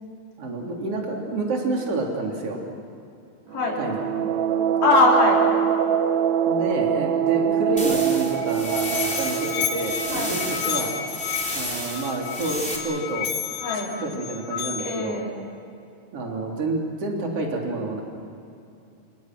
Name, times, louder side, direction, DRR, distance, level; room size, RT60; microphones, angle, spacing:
voice 1, 0.4-2.6 3.8-4.1 6.5-10.9 11.5-13.3 14.0-15.2 16.1-18.0, right 2 dB, 40° right, 0 dB, 4.2 m, -28 dB
voice 2, 3.5-4.0 4.8-5.4 10.1-10.4 13.6-13.9 14.8-15.3, left 2 dB, 60° left, -3 dB, 5.7 m, -21 dB
sound 1, 3.5-12.1, right 9 dB, 70° right, 1.8 m, -25 dB
sound 2, 7.8-12.8, equal, ahead, 2.9 m, -33 dB
Musical instrument, 8.2-15.1, left 9 dB, 75° left, 2.6 m, -31 dB
28.5 x 26.0 x 6.2 m, 2.6 s
omnidirectional pair, 4.4 m